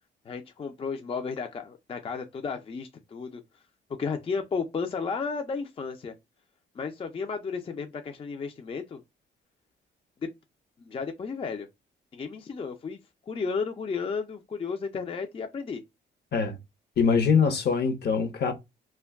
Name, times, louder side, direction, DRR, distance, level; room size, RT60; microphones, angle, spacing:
voice 1, 0.3-3.4 4.0-6.1 6.8-9.0 10.2-10.3 10.8-11.7 12.1-13.0 13.3-15.8, left 5 dB, 30° left, 0.4 m, -33 dB
voice 2, 17.0-18.5, left 6 dB, 55° left, 0.8 m, -23 dB
2.2 x 2.2 x 3.4 m
cardioid pair, 90°, 20 cm